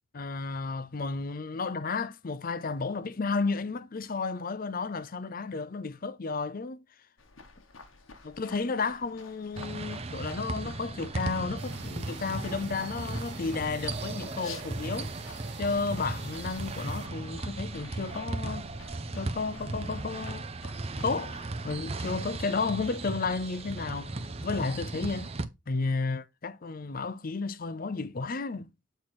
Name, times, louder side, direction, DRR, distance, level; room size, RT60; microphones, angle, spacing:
voice 1, 0.1-6.8 8.2-15.1 15.6-18.7 19.2-20.5 21.0-21.4 21.6-24.1 24.4-25.3 25.7-28.7, left 4 dB, 45° left, 0.6 m, -32 dB
sound 1, 7.2-22.2, left 4 dB, 80° left, 1.3 m, -51 dB
sound 2, 9.6-25.4, right 2 dB, 30° right, 0.6 m, -36 dB
sound 3, 11.6-17.1, right 7 dB, 60° right, 1.0 m, -49 dB
7.5 x 4.6 x 4.3 m
head